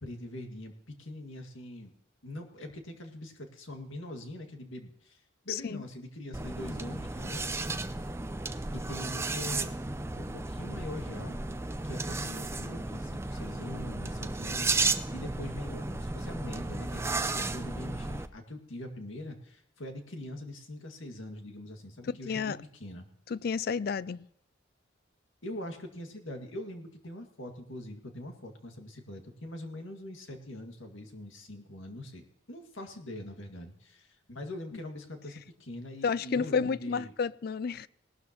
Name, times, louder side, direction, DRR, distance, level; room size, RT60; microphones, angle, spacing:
voice 1, 0.0-1.9 2.2-7.4 8.7-9.7 10.1-11.4 11.8-22.5 22.8-23.1 25.4-32.2 32.5-37.1, left 1 dB, 75° left, 2.0 m, -43 dB
voice 2, 5.5-5.8 22.1-22.6 23.3-24.2 36.0-37.9, left 5 dB, 50° left, 0.4 m, -31 dB
sound 1, 6.3-18.3, right 3 dB, 15° right, 0.4 m, -34 dB
19.0 x 12.5 x 3.0 m
head